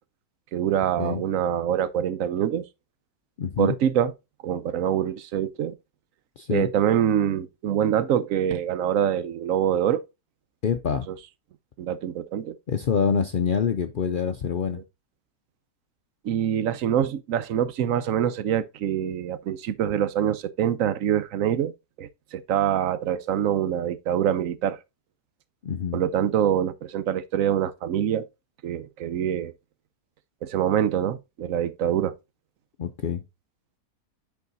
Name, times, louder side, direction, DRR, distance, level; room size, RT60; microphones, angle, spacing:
voice 1, 0.5-2.7 3.6-4.1 4.4-5.7 6.5-10.0 11.1-11.2 11.8-12.6 16.2-21.7 22.0-24.8 25.9-28.3 28.6-29.5 30.4-32.1, right 10 dB, 65° right, 1.0 m, -25 dB
voice 2, 3.4-3.7 6.4-6.7 10.6-11.1 12.7-14.8 25.6-26.0 32.8-33.2, left 6 dB, 65° left, 0.5 m, -26 dB
8.2 x 4.6 x 3.9 m
omnidirectional pair, 1.6 m